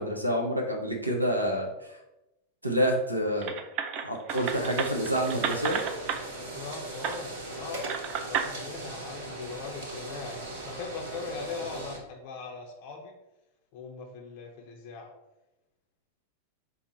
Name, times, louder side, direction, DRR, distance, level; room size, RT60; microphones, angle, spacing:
voice 1, 0.0-1.9 2.6-3.5 4.0-5.8, equal, 85° right, 2 dB, 0.6 m, -28 dB
sound 1, 3.4-6.2 7.0-7.2 7.8-8.5, right 7 dB, 40° right, 0.4 m, -32 dB
sound 2, 4.3-12.0, right 2 dB, 55° right, 1.0 m, -39 dB
voice 2, 6.5-13.1 13.7-15.1, left 4 dB, 45° left, 1 dB, 0.5 m, -40 dB
4.4 x 2.1 x 4.1 m, 0.95 s
figure-of-eight pair, 90°, 0 cm